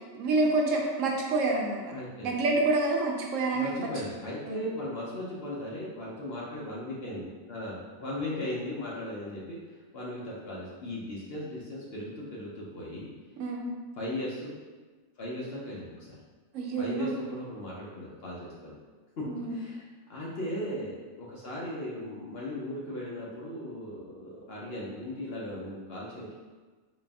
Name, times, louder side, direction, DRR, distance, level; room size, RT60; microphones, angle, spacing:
voice 1, 0.1-1.8 2.2-4.1 4.5-4.6 13.4-13.6 16.5-17.1 19.2-19.6, right 2 dB, 70° right, 0 dB, 0.9 m, -28 dB
voice 2, 1.9-2.3 3.5-9.6 9.9-13.1 14.0-14.5 15.2-16.2 16.8-18.8 19.2-19.8 20.1-26.3, left 1 dB, 55° left, -5 dB, 0.8 m, -37 dB
4.0 x 2.5 x 3.4 m, 1.4 s
omnidirectional pair, 1.5 m